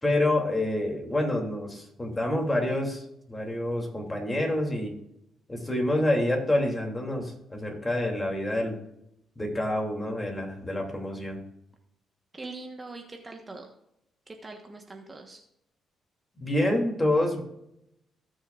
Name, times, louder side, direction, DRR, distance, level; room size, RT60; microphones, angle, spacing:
voice 1, 0.0-4.9 5.5-8.7 9.4-11.4 16.4-17.4, left 1 dB, 15° left, 1 dB, 2.8 m, -27 dB
voice 2, 12.3-13.7 14.3-15.4, right 3 dB, 25° right, 3 dB, 1.3 m, -42 dB
17.5 x 6.3 x 2.5 m, 0.80 s
cardioid pair, 90°, 0 cm